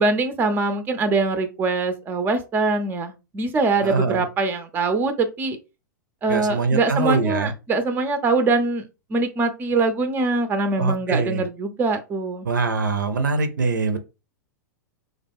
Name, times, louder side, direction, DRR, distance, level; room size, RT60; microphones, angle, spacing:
voice 1, 0.0-5.6 6.2-8.8 9.1-12.5, right 3 dB, 20° right, 0.5 m, -23 dB
voice 2, 3.8-4.2 6.3-7.5 10.8-11.4 12.4-14.0, right 4 dB, 75° right, 0.5 m, -23 dB
3.4 x 2.2 x 3.4 m
figure-of-eight pair, 95°, 10 cm